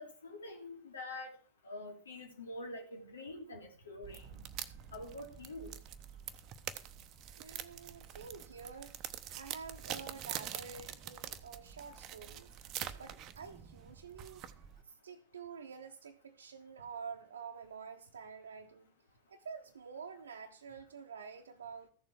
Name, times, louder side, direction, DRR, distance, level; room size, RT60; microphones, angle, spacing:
voice 1, 0.0-1.4 1.6-4.2 4.9-5.7, left 2 dB, 70° left, 2.9 m, -46 dB
sound 1, 4.0-14.8, right 10 dB, 35° right, 0.9 m, -45 dB
voice 2, 7.4-9.0 9.3-12.5 12.9-14.4 14.8-18.9 19.3-21.9, right 5 dB, 70° right, 1.0 m, -48 dB
14.5 x 7.1 x 6.3 m
figure-of-eight pair, 90°, 0 cm